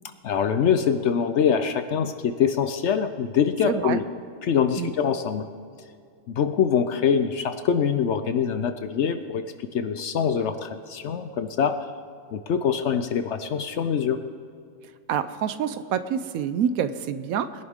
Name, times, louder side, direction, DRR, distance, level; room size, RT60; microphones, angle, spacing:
voice 1, 0.2-4.0 4.4-5.5 6.3-9.4 9.7-11.8 12.3-14.2, left 7 dB, 65° left, 9 dB, 0.8 m, -24 dB
voice 2, 3.6-4.0 4.8-4.9 15.1-17.6, right 8 dB, 75° right, 12 dB, 1.1 m, -27 dB
21.0 x 11.0 x 3.6 m, 2.3 s
omnidirectional pair, 1.5 m